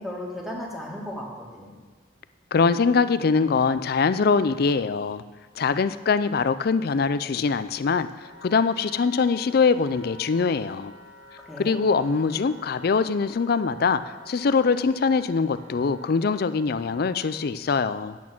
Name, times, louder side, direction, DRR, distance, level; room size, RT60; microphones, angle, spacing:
voice 1, 0.0-1.8 11.5-11.8, left 1 dB, ahead, -3 dB, 1.9 m, -35 dB
voice 2, 2.5-5.2 5.6-8.1 8.4-10.9 11.6-18.2, left 5 dB, 60° left, 14 dB, 0.4 m, -23 dB
Wind instrument woodwind instrument, 8.2-17.5, left 1 dB, 65° right, 1.6 m, -49 dB
9.0 x 8.5 x 6.0 m, 1.4 s
head